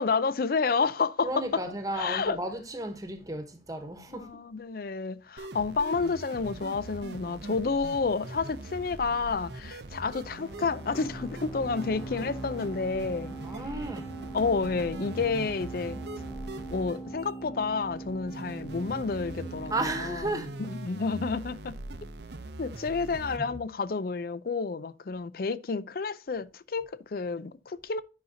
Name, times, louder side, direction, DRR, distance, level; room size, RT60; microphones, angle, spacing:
voice 1, 0.0-1.6 1.9-2.4 4.1-13.3 14.3-16.0 16.7-19.7 20.0-20.3 20.6-21.8 22.6-28.0, left 4 dB, 50° left, 0.4 m, -30 dB
voice 2, 1.2-4.3 13.4-14.1 19.7-20.8 23.3-23.6, right 2 dB, 20° right, 1.2 m, -34 dB
sound 1, 5.4-23.4, right 2 dB, 65° right, 0.8 m, -42 dB
sound 2, 10.4-21.8, right 2 dB, 15° left, 1.6 m, -42 dB
10.5 x 5.7 x 2.8 m
head